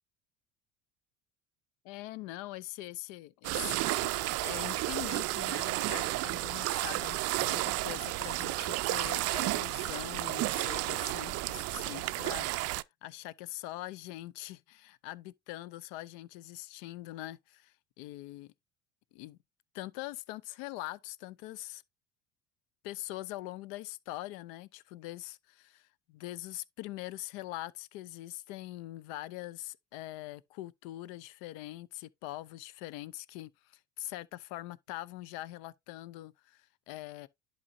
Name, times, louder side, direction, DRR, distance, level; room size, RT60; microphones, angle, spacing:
voice 1, 1.8-12.5 13.0-18.5 19.1-19.4 19.7-21.8 22.8-37.3, left 16 dB, 65° left, 0.6 m, -43 dB
sound 1, 3.4-12.8, right 18 dB, 50° right, 0.4 m, -32 dB
11.0 x 4.1 x 2.6 m
hypercardioid pair, 70°, 33 cm